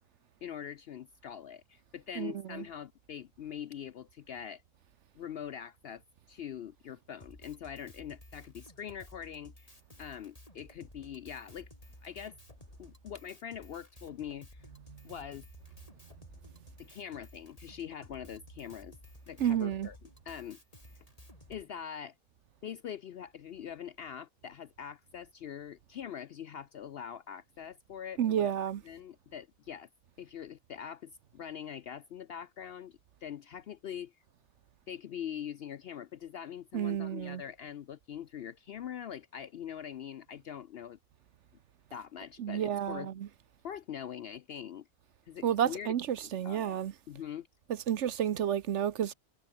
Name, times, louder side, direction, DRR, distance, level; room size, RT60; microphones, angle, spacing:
voice 1, 0.4-4.6 5.2-6.0 6.3-9.7 10.0-11.7 12.0-12.4 12.8-14.7 15.0-15.5 16.8-19.0 19.3-20.0 20.3-20.6 21.5-22.1 22.6-28.5 28.8-29.9 30.2-34.1 34.9-41.0 41.9-43.1 43.6-44.9 45.3-45.9 46.4-46.8 47.1-47.5, left 9 dB, 60° left, 0.6 m, -43 dB
voice 2, 2.1-2.7 14.7-15.2 19.4-19.9 28.2-28.8 36.7-37.4 42.4-43.3 45.4-46.9 47.7-49.1, right 9 dB, 60° right, 1.0 m, -31 dB
Drum kit, 7.2-21.6, left 1 dB, 25° left, 7.1 m, -55 dB
omnidirectional pair, 1.4 m